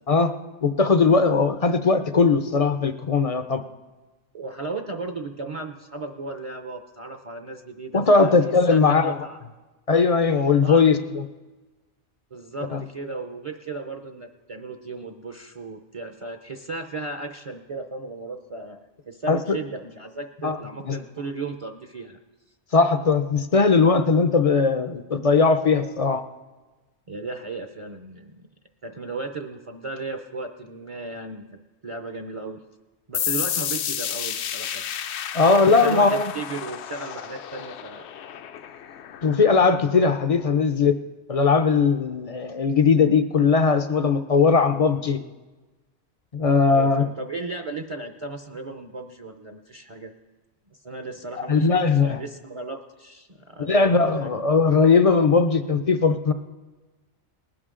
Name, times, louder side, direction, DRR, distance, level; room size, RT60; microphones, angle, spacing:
voice 1, 0.6-3.6 7.9-9.2 9.9-11.2 12.7-12.8 19.3-19.4 20.4-20.6 20.9-21.0 22.7-26.2 35.3-36.3 39.2-41.0 41.3-45.2 46.3-47.0 51.4-52.2 53.7-56.3, left 4 dB, 45° left, 9 dB, 0.5 m, -19 dB
voice 2, 4.3-8.4 8.7-9.4 10.6-10.8 12.3-22.2 27.1-28.5 28.8-32.6 33.1-34.8 35.7-38.1 46.7-50.1 50.7-54.3, right 3 dB, 35° right, 5 dB, 0.6 m, -35 dB
sound 1, 33.1-40.5, left 9 dB, 70° left, 0.9 m, -32 dB
19.5 x 11.0 x 3.7 m, 1.2 s
omnidirectional pair, 1.2 m